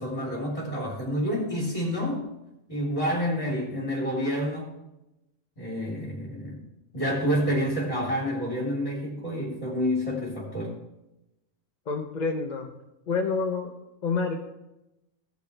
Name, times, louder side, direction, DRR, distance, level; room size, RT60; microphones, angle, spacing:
voice 1, 0.0-2.2 2.7-4.7 5.6-6.6 6.9-10.8, equal, 25° left, -4 dB, 3.5 m, -28 dB
voice 2, 11.9-12.7 13.1-13.7 14.0-14.3, left 4 dB, 45° left, 2 dB, 0.7 m, -28 dB
16.5 x 6.7 x 3.2 m, 0.94 s
omnidirectional pair, 1.3 m